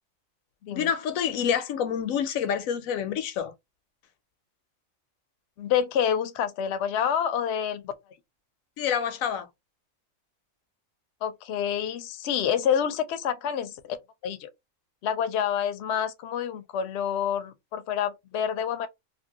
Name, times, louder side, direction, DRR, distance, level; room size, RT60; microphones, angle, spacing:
voice 1, 0.7-3.5 8.8-9.5, left 8 dB, 90° left, 1.0 m, -27 dB
voice 2, 5.6-7.9 11.2-14.0 14.2-14.5 15.0-18.9, left 8 dB, 65° left, 0.8 m, -28 dB
2.7 x 2.6 x 2.8 m
omnidirectional pair, 1.4 m